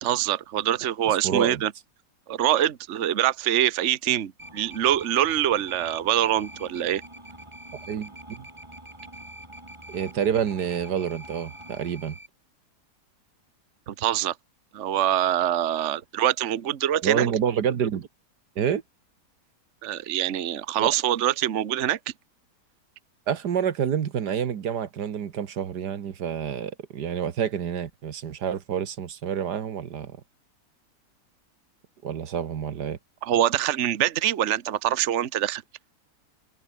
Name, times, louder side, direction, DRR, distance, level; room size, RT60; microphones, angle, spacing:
voice 1, 0.0-1.7 2.3-7.0 13.9-14.3 14.7-17.3 19.8-22.0 33.2-35.6, right 11 dB, 50° right, 1.2 m, -24 dB
voice 2, 1.2-1.6 7.9-8.5 9.9-12.1 17.0-18.1 18.6-18.8 20.8-20.9 23.3-30.2 32.0-33.0, right 8 dB, 80° right, 1.9 m, -28 dB
sound 1, 4.4-12.3, right 1 dB, 15° right, 4.7 m, -44 dB
omnidirectional pair, 1.8 m